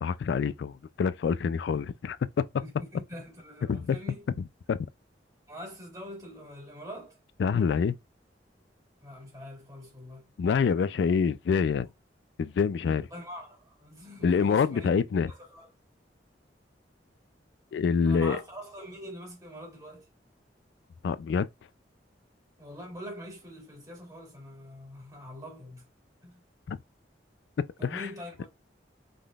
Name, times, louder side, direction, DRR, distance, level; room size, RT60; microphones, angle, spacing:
voice 1, 0.0-2.2 3.7-4.0 4.7-4.8 7.4-8.0 10.4-11.9 12.4-13.1 14.2-15.3 17.7-18.4 21.0-21.5 26.7-26.8 27.8-28.1, left 6 dB, 70° left, 0.3 m, -26 dB
voice 2, 2.6-4.2 5.5-7.2 9.0-10.2 12.9-14.9 15.3-15.7 18.0-20.1 22.6-25.9 26.2-26.4 27.8-28.5, equal, 20° right, 2.2 m, -44 dB
5.2 x 3.9 x 2.3 m
head